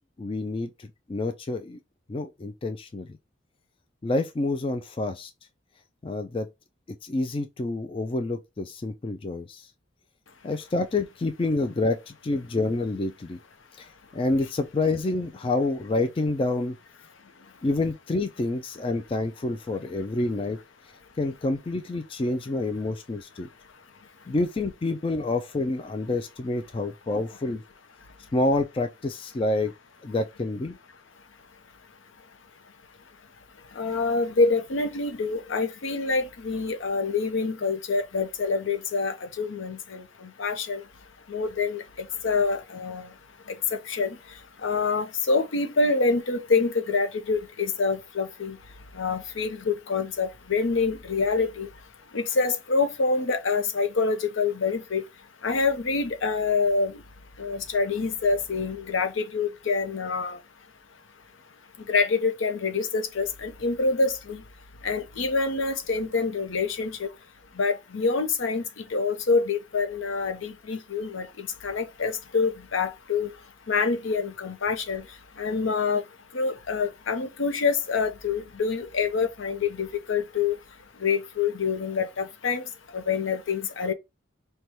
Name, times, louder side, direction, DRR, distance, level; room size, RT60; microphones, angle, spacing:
voice 1, 0.2-1.8 2.1-3.1 4.0-5.3 6.0-6.5 7.0-9.7 10.4-13.4 13.8-16.8 17.6-20.6 21.2-23.5 24.3-27.6 28.3-29.7 30.0-30.8, left 2 dB, 25° left, 0.3 m, -28 dB
voice 2, 33.8-40.8 41.3-41.8 42.2-43.1 43.9-44.2 44.6-48.6 49.0-51.7 52.1-55.0 55.4-56.9 57.4-60.4 61.9-64.4 64.8-67.1 67.6-68.6 68.9-73.3 73.7-75.0 75.4-76.0 76.3-80.5 81.0-82.6 82.9-83.9, left 4 dB, 80° left, 0.7 m, -26 dB
5.4 x 2.2 x 3.1 m
head